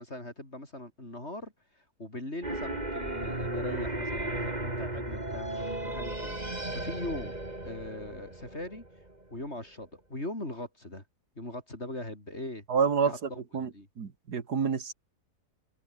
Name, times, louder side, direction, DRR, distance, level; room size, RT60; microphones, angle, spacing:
voice 1, 0.0-5.5 5.8-7.3 7.6-8.8 9.3-11.0 11.4-12.7 13.1-13.9, left 1 dB, 40° left, 6.0 m, -40 dB
sound 1, 2.4-9.2, right 1 dB, 25° right, 4.1 m, -35 dB
voice 2, 12.7-13.7 14.0-14.9, right 6 dB, 75° right, 2.5 m, -28 dB
omnidirectional pair, 1.7 m